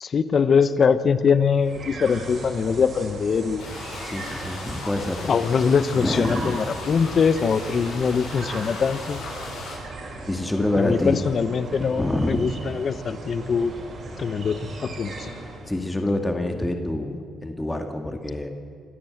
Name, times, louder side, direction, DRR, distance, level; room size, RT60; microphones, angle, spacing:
voice 1, 0.0-3.6 5.3-9.2 10.8-13.7 14.2-15.3, left 6 dB, 50° left, 13 dB, 0.9 m, -22 dB
sound 1, 1.5-15.8, right 2 dB, 50° right, 5.9 m, -37 dB
sound 2, 3.6-9.8, left 3 dB, 90° left, 7.7 m, -37 dB
voice 2, 4.0-5.2 5.9-6.6 10.3-11.2 12.0-12.5 15.7-17.2 17.4-18.5, left 1 dB, 10° left, 5 dB, 1.9 m, -26 dB
25.5 x 13.5 x 7.9 m, 2.1 s
cardioid pair, 90°, 0 cm